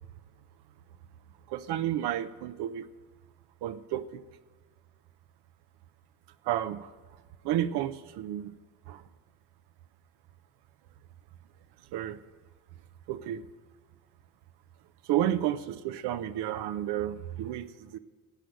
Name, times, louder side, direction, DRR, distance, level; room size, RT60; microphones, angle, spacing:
voice 1, 1.5-2.9 3.6-4.2 6.4-6.9 7.4-8.5 8.9-9.0 11.9-12.2 13.1-13.4 15.0-18.0, right 12 dB, 80° right, 11 dB, 0.7 m, -31 dB
14.5 x 7.9 x 6.4 m, 1.4 s
cardioid pair, 90°, 39 cm